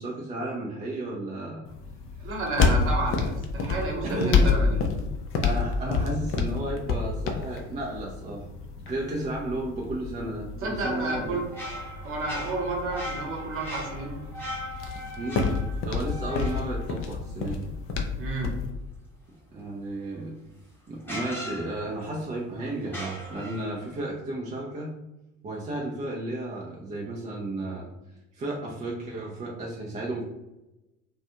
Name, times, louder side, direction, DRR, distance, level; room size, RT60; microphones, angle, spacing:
voice 1, 0.0-1.6 2.2-2.3 4.0-4.6 5.4-8.4 8.8-11.4 15.2-15.5 15.8-17.6 19.5-20.3 20.9-24.9 25.4-27.9 28.3-30.2, right 1 dB, 20° right, -3 dB, 0.4 m, -33 dB
sound 1, 1.7-18.7, left 5 dB, 35° left, 0.5 m, -29 dB
voice 2, 2.2-4.8 10.6-11.4 12.0-14.1 18.2-18.6, right 3 dB, 35° right, 0 dB, 0.8 m, -31 dB
sound 2, 11.2-17.8 20.2-20.3 21.0-22.2 22.8-24.0, equal, 5° left, 0.8 m, -39 dB
2.4 x 2.3 x 2.8 m, 0.96 s
figure-of-eight pair, 60°, 38 cm